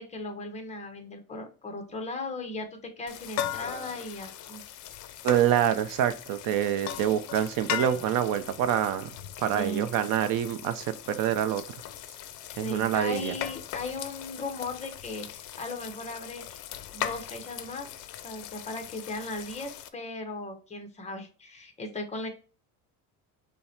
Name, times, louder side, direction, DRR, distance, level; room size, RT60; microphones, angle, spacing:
voice 1, 0.0-4.6 9.4-9.9 12.5-16.6 16.9-17.9 18.2-22.3, left 2 dB, 20° left, 5 dB, 0.8 m, -37 dB
sound 1, 3.1-19.9, left 11 dB, 55° left, 0.6 m, -39 dB
voice 2, 5.2-11.6 12.6-13.4, right 10 dB, 65° right, 11 dB, 0.6 m, -26 dB
5.6 x 2.1 x 4.2 m, 0.37 s
cardioid pair, 150°, 36 cm